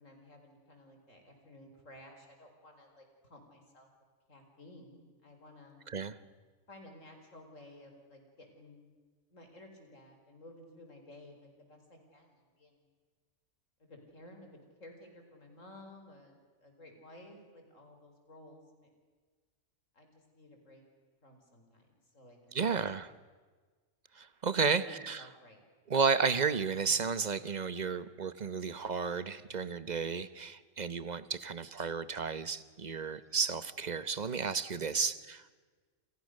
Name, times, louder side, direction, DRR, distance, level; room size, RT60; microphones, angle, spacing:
voice 1, 0.0-3.9 4.3-5.8 6.7-8.9 9.3-12.9 13.8-18.9 19.9-20.8 21.2-22.7 24.7-25.6 34.9-35.2, left 1 dB, 85° left, 4 dB, 5.1 m, -55 dB
voice 2, 22.5-23.1 24.1-25.2 25.9-35.6, right 5 dB, 35° right, 15 dB, 1.1 m, -32 dB
29.0 x 28.5 x 6.6 m, 1.4 s
omnidirectional pair, 1.3 m